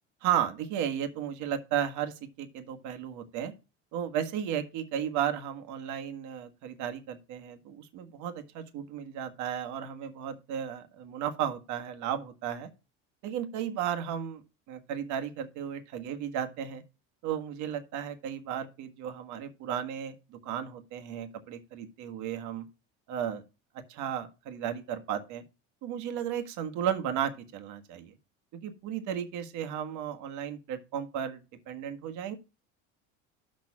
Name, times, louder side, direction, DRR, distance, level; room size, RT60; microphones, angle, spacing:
voice 1, 0.2-3.5 3.9-12.7 13.2-14.4 14.7-16.8 17.2-22.7 23.1-23.4 23.9-25.4 25.8-28.1 28.5-32.4, right 9 dB, 65° right, 1.6 m, -34 dB
6.6 x 6.0 x 6.1 m
supercardioid pair, 110°, 33 cm